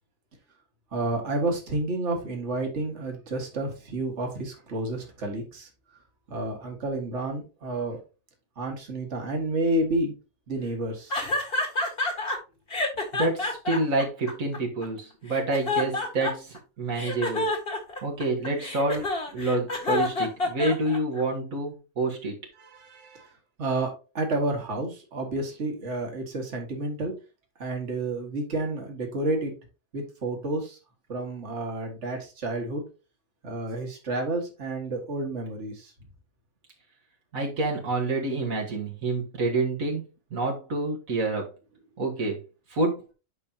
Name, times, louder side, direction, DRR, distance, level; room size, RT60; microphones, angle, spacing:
voice 1, 0.9-5.7 6.3-8.0 8.6-10.1 10.5-11.1 22.6-23.3 23.6-27.1 27.6-29.5 29.9-30.8 31.1-32.8 33.4-35.9, right 2 dB, 55° right, 2 dB, 2.1 m, -30 dB
sound 1, 11.1-12.4 12.7-14.8 15.3-16.6 16.9-21.2, left 2 dB, 45° left, 2.0 m, -28 dB
voice 2, 13.1-17.5 18.0-19.1 19.3-22.4 37.3-40.0 40.3-41.5 42.0-42.4 42.7-43.0, right 2 dB, 75° right, -1 dB, 2.0 m, -28 dB
9.3 x 5.2 x 2.9 m, 0.31 s
omnidirectional pair, 1.4 m